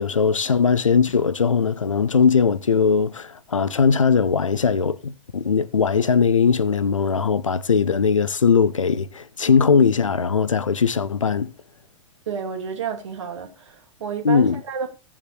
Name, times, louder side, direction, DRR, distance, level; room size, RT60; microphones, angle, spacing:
voice 1, 0.0-11.5 14.2-14.6, left 6 dB, 80° left, 0.7 m, -19 dB
voice 2, 12.3-14.9, right 6 dB, 65° right, 2.5 m, -30 dB
16.5 x 7.2 x 3.0 m
figure-of-eight pair, 95°, 16 cm